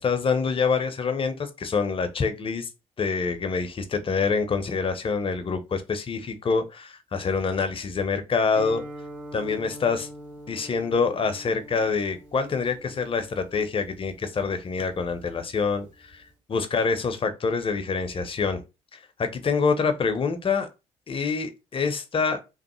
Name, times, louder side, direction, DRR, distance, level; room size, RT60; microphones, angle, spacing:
voice 1, 0.0-2.7 3.0-8.8 9.3-10.1 10.5-15.9 16.1-16.2 16.5-18.6 18.9-20.7 21.1-22.4, left 5 dB, 40° left, 0.7 m, -26 dB
Guitar, 8.5-16.3, right 1 dB, 75° right, 1.6 m, -44 dB
3.0 x 2.0 x 3.0 m
hypercardioid pair, 50°, 14 cm